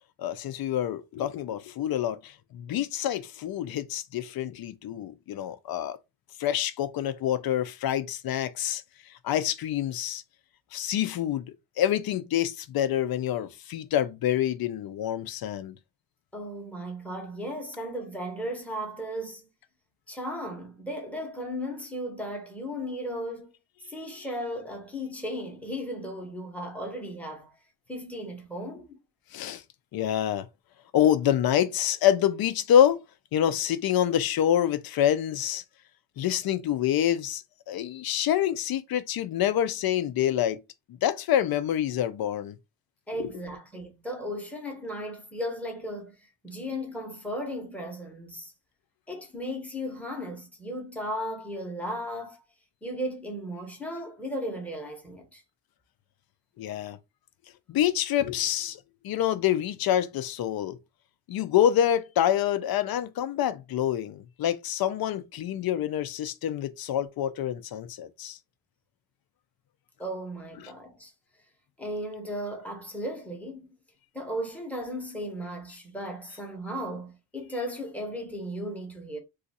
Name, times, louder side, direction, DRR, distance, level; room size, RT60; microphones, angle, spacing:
voice 1, 0.2-6.0 6.4-10.2 10.7-11.4 11.8-15.8 29.3-29.6 29.9-30.5 30.9-33.0 33.3-35.6 36.2-40.6 41.0-42.6 43.2-43.3 56.6-57.0 57.7-60.8 61.3-68.4 70.6-70.7, left 10 dB, 55° left, 0.5 m, -27 dB
voice 2, 16.3-19.5 20.1-23.5 23.8-27.5 27.9-29.0 43.1-48.5 49.1-52.4 52.8-55.4 70.0-71.1 71.8-73.8 74.1-79.2, equal, 5° left, 0.8 m, -36 dB
2.6 x 2.4 x 4.1 m
wide cardioid pair, 160°, 43 cm